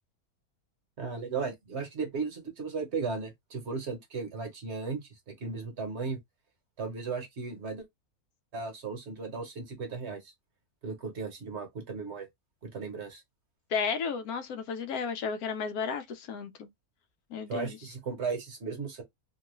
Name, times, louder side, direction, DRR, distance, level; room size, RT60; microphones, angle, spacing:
voice 1, 1.0-6.2 6.8-7.8 8.5-10.3 10.8-12.3 12.6-13.2 17.5-19.0, right 4 dB, 50° right, 1.1 m, -36 dB
voice 2, 13.7-16.7 17.3-17.8, left 6 dB, 80° left, 1.1 m, -33 dB
2.9 x 2.3 x 3.0 m
omnidirectional pair, 1.6 m